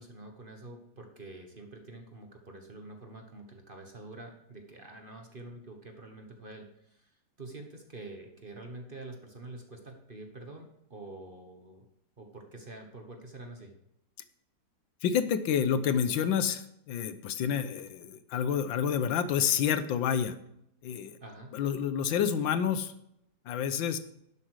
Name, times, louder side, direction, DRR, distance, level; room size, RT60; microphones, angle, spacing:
voice 1, 0.0-7.1 7.4-11.9 12.2-13.7 21.2-21.6, right 2 dB, 30° right, 3 dB, 1.2 m, -47 dB
voice 2, 15.0-20.3 20.8-21.2 21.5-22.9 23.5-24.0, left 8 dB, 80° left, 12 dB, 1.5 m, -29 dB
11.5 x 7.9 x 4.8 m, 0.77 s
omnidirectional pair, 2.1 m